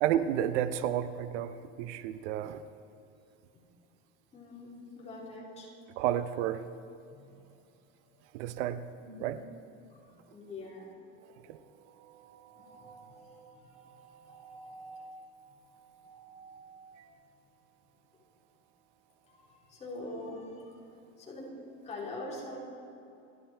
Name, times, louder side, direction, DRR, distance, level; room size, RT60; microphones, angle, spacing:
voice 1, 0.0-2.6 6.0-6.6 8.3-8.9 9.2-9.4 11.5-11.6 12.1-12.9 13.9-14.5, right 11 dB, 75° right, 12 dB, 0.8 m, -32 dB
voice 2, 4.3-5.9 7.1-7.4 9.0-9.4 9.9-10.9 12.5-13.8 14.3-15.1 16.0-16.8 17.1-17.2 19.3-19.4 19.7-20.8 21.2-22.6, left 1 dB, 20° left, -5 dB, 4.0 m, -45 dB
28.5 x 11.0 x 4.5 m, 2.7 s
cardioid pair, 165°, 36 cm